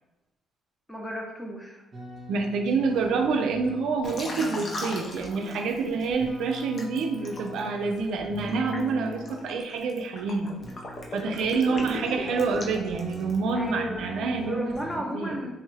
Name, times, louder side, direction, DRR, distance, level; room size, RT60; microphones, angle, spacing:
voice 1, 0.9-1.8 13.5-14.1 14.4-15.5, equal, 10° left, 0 dB, 0.7 m, -33 dB
sound 1, 1.9-9.7 10.6-15.0, equal, 35° right, 0.6 m, -42 dB
voice 2, 2.3-10.5 11.1-14.7 15.1-15.4, right 4 dB, 80° right, 4 dB, 0.3 m, -27 dB
Liquid, 4.0-6.0 6.5-13.5, left 2 dB, 50° left, 0.6 m, -38 dB
3.0 x 2.3 x 3.2 m, 1.0 s
cardioid pair, 90°, 0 cm